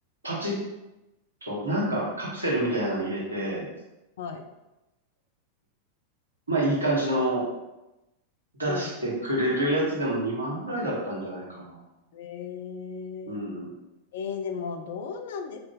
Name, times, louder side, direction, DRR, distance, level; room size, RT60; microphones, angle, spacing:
voice 1, 0.2-0.6 1.4-3.7 6.5-7.5 8.6-11.8 13.3-13.7, right 1 dB, 80° right, -5 dB, 1.4 m, -27 dB
voice 2, 8.7-9.0 12.1-13.4 14.1-15.6, left 5 dB, 60° left, 6 dB, 0.5 m, -35 dB
4.5 x 2.5 x 3.7 m, 0.98 s
figure-of-eight pair, 90°, 0 cm